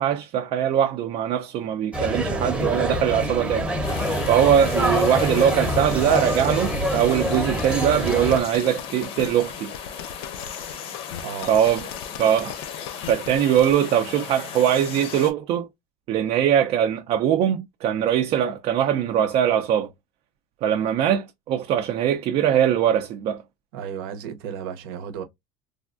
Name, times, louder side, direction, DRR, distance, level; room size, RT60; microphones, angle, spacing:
voice 1, 0.0-3.7 4.3-9.7 11.5-11.8 12.2-12.6 13.1-15.7 16.1-19.9 20.6-23.4, right 9 dB, 55° right, 0.4 m, -21 dB
sound 1, 1.9-8.4, equal, 10° right, 0.7 m, -25 dB
sound 2, 3.8-15.3, left 8 dB, 55° left, 0.7 m, -36 dB
sound 3, 5.2-13.7, left 9 dB, 90° left, 0.4 m, -39 dB
voice 2, 23.7-25.2, right 8 dB, 85° right, 0.7 m, -33 dB
3.3 x 2.2 x 2.4 m
cardioid pair, 125°, 12 cm